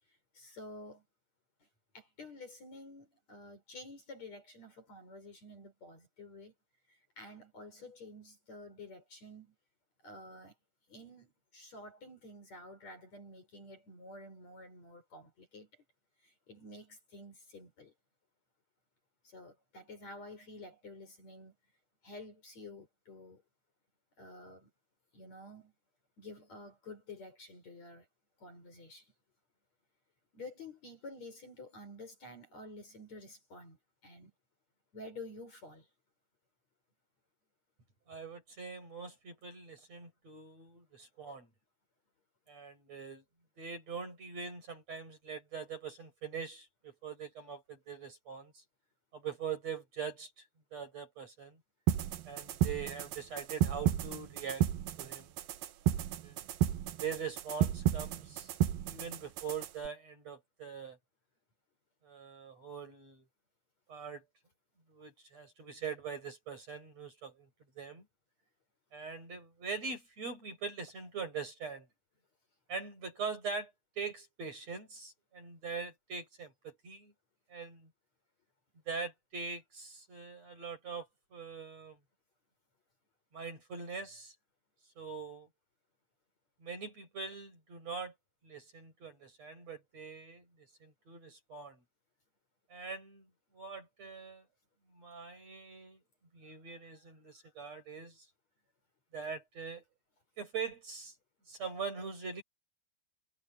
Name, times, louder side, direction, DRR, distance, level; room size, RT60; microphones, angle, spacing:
voice 1, 0.1-1.0 1.6-1.7 1.9-6.5 6.9-9.5 10.0-10.5 10.9-15.8 16.2-17.9 19.2-21.5 22.0-23.4 24.2-24.7 25.1-25.7 26.2-28.1 28.4-29.1 30.3-34.3 34.9-35.9, left 2 dB, 35° left, 6.2 m, -50 dB
voice 2, 38.1-41.5 42.5-43.2 43.6-48.6 49.1-50.3 50.7-51.6 52.3-54.7 55.0-55.3 56.2-56.4 57.0-58.5 58.8-61.0 62.0-63.2 63.9-64.2 64.9-67.5 67.8-68.1 68.9-71.9 72.7-77.1 77.5-77.9 78.9-82.0 83.3-84.3 85.0-85.5 86.6-88.1 88.4-91.8 92.7-94.5 94.9-96.0 96.3-98.3 99.1-99.8 100.4-101.2 101.5-102.4, right 5 dB, 35° right, 7.5 m, -42 dB
sound 1, 51.9-59.9, right 11 dB, 65° right, 2.6 m, -33 dB
omnidirectional pair, 5.2 m